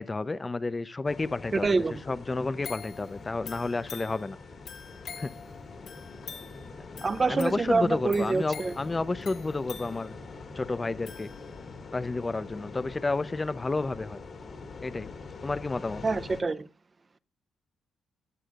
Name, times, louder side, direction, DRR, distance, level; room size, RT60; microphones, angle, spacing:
voice 1, 0.0-1.8 2.1-4.4 5.2-5.3 6.8-6.9 7.3-10.2 10.5-11.3 11.9-14.2 14.8-15.1 15.4-16.0, left 3 dB, 25° left, 0.6 m, -31 dB
sound 1, 1.1-16.4, left 4 dB, 45° left, 2.1 m, -44 dB
voice 2, 1.5-2.0 7.0-8.7 16.0-16.7, right 3 dB, 30° right, 0.6 m, -26 dB
sound 2, 2.6-11.9 12.3-12.4, left 6 dB, 65° left, 2.0 m, -47 dB
16.5 x 7.7 x 2.5 m
cardioid pair, 90°, 0 cm